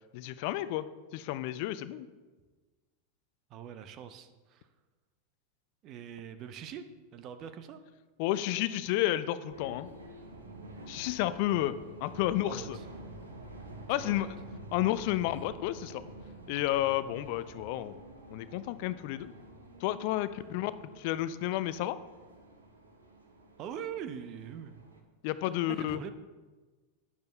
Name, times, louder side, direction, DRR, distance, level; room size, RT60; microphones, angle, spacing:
voice 1, 0.1-0.9 1.1-2.1 8.2-9.9 10.9-11.7 12.0-12.8 13.9-14.3 14.7-16.0 16.5-18.0 18.3-19.3 19.8-20.7 21.0-22.0 25.2-26.0, left 14 dB, 55° left, 14 dB, 0.4 m, -31 dB
voice 2, 3.5-4.7 5.8-6.9 7.1-7.8 12.4-12.8 14.0-14.3 23.6-24.9 25.7-26.1, right 8 dB, 40° right, 10 dB, 0.7 m, -43 dB
sound 1, 9.5-25.0, right 1 dB, 80° right, 1.2 m, -49 dB
11.5 x 9.5 x 2.3 m, 1.3 s
figure-of-eight pair, 90°, 0 cm